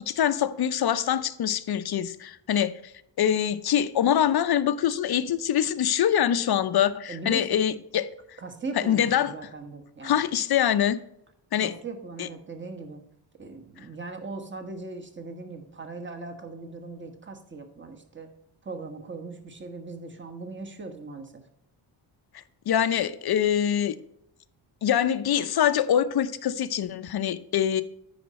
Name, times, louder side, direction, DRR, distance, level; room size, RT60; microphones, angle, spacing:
voice 1, 0.0-2.7 3.2-8.1 8.8-9.3 10.0-11.0 11.5-11.7 12.2-12.3 22.7-24.0 24.8-27.8, left 9 dB, 50° left, 0.6 m, -24 dB
voice 2, 7.1-7.6 8.4-10.2 11.6-13.0 13.4-18.3 18.6-21.3, right 3 dB, 25° right, 1.3 m, -39 dB
9.5 x 5.1 x 4.2 m
cardioid pair, 80°, 48 cm